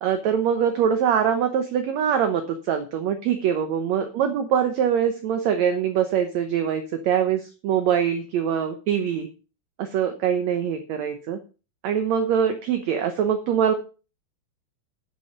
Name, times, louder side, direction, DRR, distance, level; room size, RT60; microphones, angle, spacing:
voice 1, 0.0-9.3 9.8-11.4 11.8-13.7, right 8 dB, 65° right, 7 dB, 1.9 m, -23 dB
11.0 x 6.9 x 5.8 m, 0.34 s
omnidirectional pair, 4.2 m